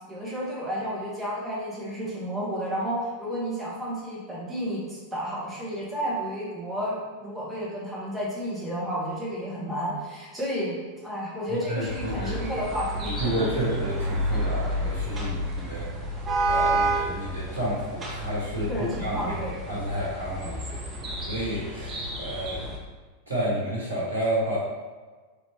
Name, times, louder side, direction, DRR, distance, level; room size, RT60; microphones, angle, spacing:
voice 1, 0.1-6.9 7.2-13.3 18.7-19.5, equal, 5° right, -8 dB, 1.3 m, -31 dB
voice 2, 11.5-12.4 13.0-15.9 16.5-18.7 19.0-19.3 19.7-20.8 21.3-22.7 23.3-24.6, right 1 dB, 80° right, -6 dB, 1.1 m, -30 dB
sound 1, 11.9-22.8, right 1 dB, 25° right, 0.7 m, -30 dB
3.4 x 2.9 x 2.8 m, 1.3 s
figure-of-eight pair, 90°, 0 cm